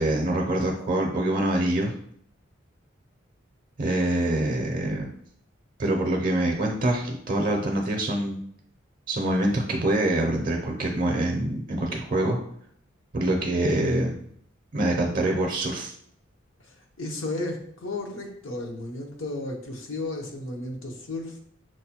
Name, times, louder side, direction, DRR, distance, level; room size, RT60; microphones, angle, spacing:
voice 1, 0.0-1.9 3.8-5.1 5.8-8.4 9.1-12.4 13.1-14.2 14.7-15.9, right 1 dB, 45° right, 2 dB, 0.5 m, -25 dB
voice 2, 16.6-21.4, left 2 dB, 75° left, 2 dB, 0.7 m, -34 dB
6.1 x 2.2 x 2.8 m, 0.65 s
head